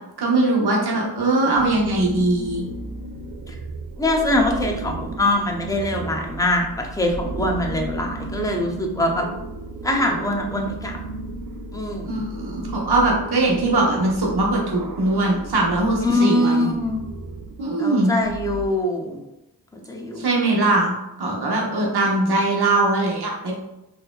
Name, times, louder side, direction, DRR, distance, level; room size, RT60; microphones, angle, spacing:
voice 1, 0.2-2.6 12.0-16.7 17.6-18.1 20.2-20.9 21.2-23.5, right 2 dB, 65° right, -2 dB, 1.1 m, -21 dB
sound 1, 1.3-18.6, right 2 dB, 50° right, 0.5 m, -34 dB
voice 2, 4.0-9.2 9.8-11.0 11.7-12.2 16.0-17.0 17.8-19.2 19.9-20.3 21.9-22.3, left 1 dB, 10° left, 1 dB, 0.5 m, -23 dB
4.1 x 2.7 x 2.3 m, 0.93 s
cardioid pair, 75°, 41 cm